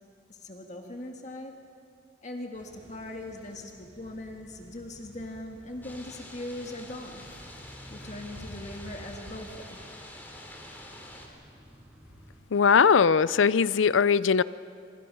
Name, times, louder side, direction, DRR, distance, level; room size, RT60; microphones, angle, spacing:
voice 1, 0.3-1.6 2.2-7.3 7.9-9.8, left 1 dB, 35° left, 3 dB, 1.7 m, -40 dB
sound 1, 2.5-12.4, equal, 10° right, 5.3 m, -50 dB
sound 2, 5.8-11.3, left 1 dB, 10° left, 2.7 m, -47 dB
voice 2, 12.5-14.4, left 6 dB, 80° left, 17 dB, 0.5 m, -20 dB
26.5 x 25.5 x 5.5 m, 2.4 s
head